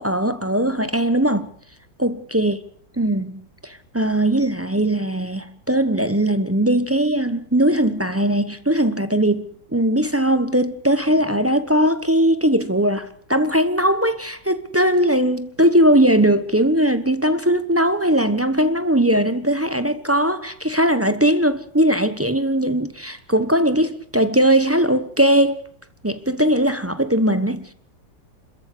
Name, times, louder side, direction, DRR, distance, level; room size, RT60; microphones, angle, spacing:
voice 1, 0.0-1.5 2.0-2.6 3.0-25.6 26.0-27.7, right 1 dB, 15° right, 0.5 m, -19 dB
26.5 x 14.0 x 8.3 m
omnidirectional pair, 2.1 m